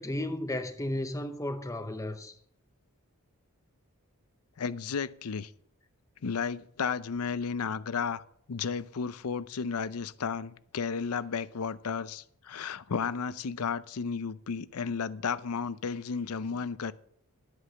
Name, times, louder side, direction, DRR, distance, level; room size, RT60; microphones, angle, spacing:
voice 1, 0.0-2.3, left 1 dB, 15° left, 0.7 m, -34 dB
voice 2, 4.6-5.5 6.2-8.2 8.5-16.9, left 5 dB, 75° left, 0.6 m, -33 dB
12.0 x 8.2 x 5.7 m
head